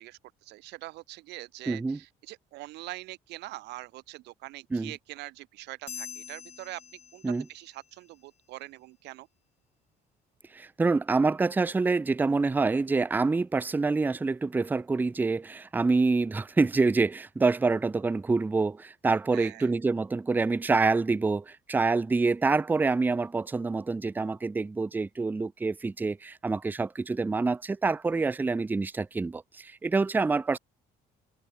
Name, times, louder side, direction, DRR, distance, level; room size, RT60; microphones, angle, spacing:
voice 1, 0.0-6.8 7.1-7.2 7.5-9.3 19.3-19.7, right 19 dB, 85° right, 4.5 m, -43 dB
voice 2, 1.7-2.0 4.7-4.9 7.2-7.5 10.5-30.6, right 3 dB, 10° right, 0.4 m, -26 dB
sound 1, 5.9-7.7, left 7 dB, 40° left, 6.0 m, -44 dB
open air
cardioid pair, 110°, 17 cm